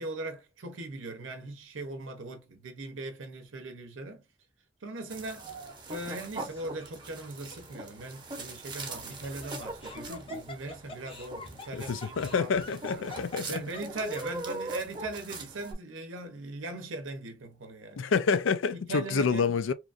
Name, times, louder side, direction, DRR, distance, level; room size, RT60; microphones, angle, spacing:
voice 1, 0.0-4.2 4.8-5.5 5.9-13.0 13.5-18.1 18.7-19.7, right 2 dB, 90° right, 0.7 m, -40 dB
sound 1, 5.1-15.7, right 2 dB, 25° right, 0.8 m, -41 dB
Laughter, 6.4-6.9 7.5-7.6 8.8-14.4, left 2 dB, 30° left, 0.6 m, -46 dB
voice 2, 11.7-13.6 18.0-19.7, left 5 dB, 80° left, 0.4 m, -28 dB
2.9 x 2.4 x 2.4 m
head